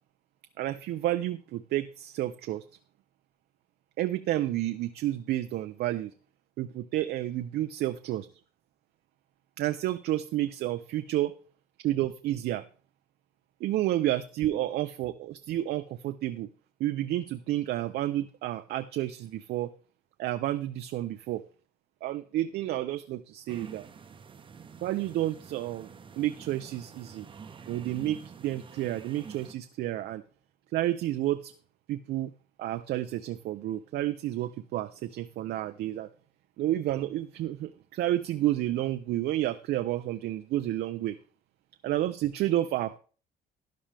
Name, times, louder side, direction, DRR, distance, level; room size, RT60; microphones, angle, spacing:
voice 1, 0.6-2.6 4.0-6.1 6.6-8.3 9.6-11.3 11.8-12.6 13.6-16.5 16.8-19.7 20.2-21.4 22.0-23.9 24.8-25.9 26.2-27.3 27.7-30.2 30.7-31.5 31.9-32.3 32.6-36.1 36.6-41.2 41.8-43.0, right 14 dB, 70° right, 8 dB, 0.7 m, -30 dB
sound 1, 23.5-29.5, right 6 dB, 30° right, 0.9 m, -47 dB
13.0 x 10.5 x 3.4 m, 0.39 s
cardioid pair, 130°, 17 cm